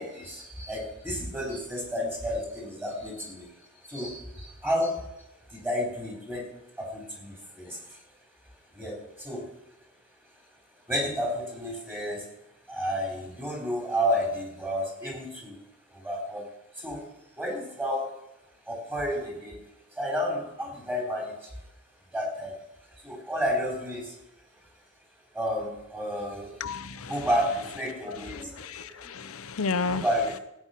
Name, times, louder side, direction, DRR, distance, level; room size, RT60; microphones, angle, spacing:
voice 1, 0.0-3.5 3.9-5.1 5.5-6.5 6.8-8.0 8.7-9.4 10.9-12.2 12.7-15.6 15.9-16.4 16.8-17.0 17.4-18.1 18.7-19.6 20.0-21.5 22.1-22.6 23.0-24.1 25.3-26.5 27.0-29.1 29.8-30.4, equal, 10° right, 0 dB, 4.0 m, -31 dB
voice 2, 26.6-27.1 28.1-30.0, left 4 dB, 85° left, 10 dB, 0.7 m, -32 dB
16.5 x 9.0 x 5.8 m, 0.89 s
head